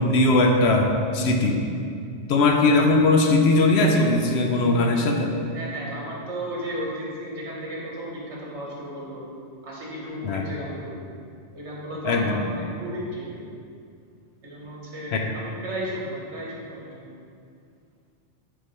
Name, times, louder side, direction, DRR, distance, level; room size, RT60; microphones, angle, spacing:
voice 1, 0.0-1.6 2.3-5.4 10.2-10.4 12.0-12.4 15.1-15.2, left 2 dB, 70° left, 2 dB, 0.8 m, -19 dB
voice 2, 5.5-9.2 9.6-10.9 11.5-13.3 14.4-17.1, right 1 dB, 70° right, -4 dB, 1.5 m, -34 dB
8.1 x 3.6 x 3.2 m, 2.4 s
omnidirectional pair, 1.2 m